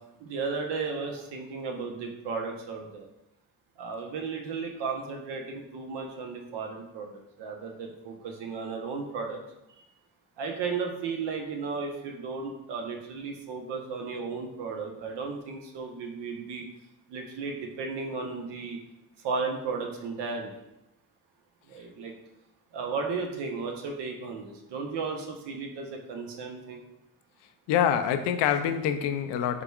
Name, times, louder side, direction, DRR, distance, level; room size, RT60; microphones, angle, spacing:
voice 1, 0.2-3.1 3.8-7.1 7.4-9.4 9.7-9.8 10.4-16.6 17.1-18.8 19.2-20.6 21.7-22.1 22.7-26.8, right 4 dB, 65° right, 2 dB, 0.9 m, -34 dB
voice 2, 27.7-29.6, left 9 dB, 70° left, 9 dB, 0.5 m, -25 dB
4.9 x 3.4 x 2.3 m, 0.88 s
hypercardioid pair, 50°, 45 cm